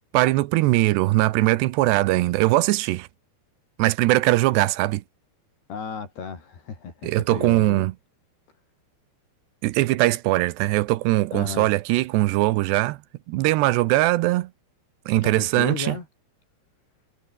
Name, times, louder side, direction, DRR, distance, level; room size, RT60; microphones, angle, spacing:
voice 1, 0.1-3.1 3.8-5.0 7.0-7.9 9.6-13.0 13.3-14.5 15.1-16.0, right 18 dB, 80° right, 2.9 m, -21 dB
voice 2, 5.7-7.9 11.3-11.7 15.2-16.1, left 6 dB, 65° left, 6.9 m, -34 dB
omnidirectional pair, 5.0 m